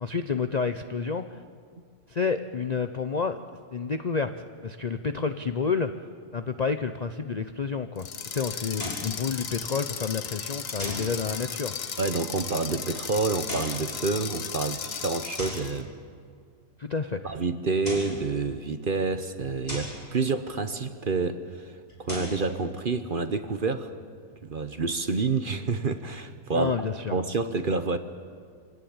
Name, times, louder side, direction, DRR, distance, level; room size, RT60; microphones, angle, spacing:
voice 1, 0.0-1.4 2.1-3.4 3.7-5.9 6.3-11.7 16.8-17.3 26.5-27.1, left 5 dB, 75° left, 9 dB, 0.3 m, -29 dB
sound 1, 8.0-15.8, left 7 dB, 55° left, 1.4 m, -36 dB
sound 2, 8.7-9.1 10.8-11.1 13.3-13.8 15.4-15.7 17.6-18.2 19.7-20.0 21.9-22.4, left 1 dB, 25° left, 6.2 m, -36 dB
voice 2, 12.0-15.9 17.2-21.7 22.0-23.9 24.4-26.7 27.1-28.0, right 4 dB, 40° right, 10 dB, 0.9 m, -28 dB
25.5 x 17.5 x 8.8 m, 2.1 s
omnidirectional pair, 1.8 m